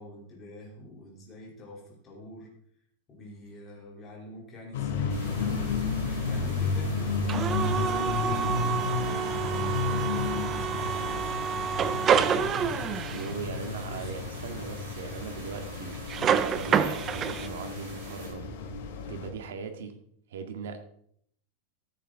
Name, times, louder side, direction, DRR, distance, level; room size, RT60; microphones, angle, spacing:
voice 1, 0.0-2.5 3.1-5.8 6.3-9.6 9.9-11.3 11.7-12.8 13.5-14.1, left 2 dB, 15° left, -3 dB, 3.3 m, -45 dB
sound 1, 4.7-19.3, left 4 dB, 70° left, 3.0 m, -32 dB
sound 2, 5.1-18.3, right 3 dB, 50° right, 6.0 m, -47 dB
sound 3, 7.3-13.4 16.1-17.5, right 8 dB, 20° right, 0.5 m, -28 dB
voice 2, 13.1-18.5 19.1-20.0 20.3-20.8, right 6 dB, 85° right, 6 dB, 1.9 m, -39 dB
14.0 x 9.2 x 3.8 m, 0.66 s
supercardioid pair, 180°, 0 cm